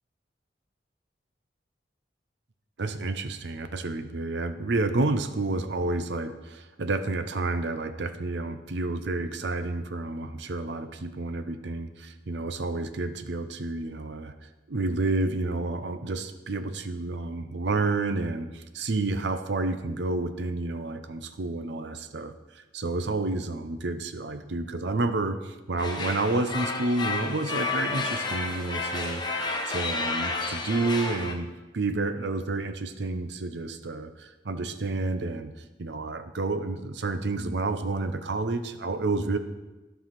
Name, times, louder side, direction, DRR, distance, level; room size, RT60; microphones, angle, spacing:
voice 1, 2.8-14.3 14.7-31.5 31.7-35.5 35.8-39.4, right 3 dB, 65° right, 9 dB, 0.7 m, -30 dB
sound 1, 25.8-31.3, left 3 dB, 25° left, 1.0 m, -31 dB
12.5 x 5.6 x 5.9 m, 1.1 s
head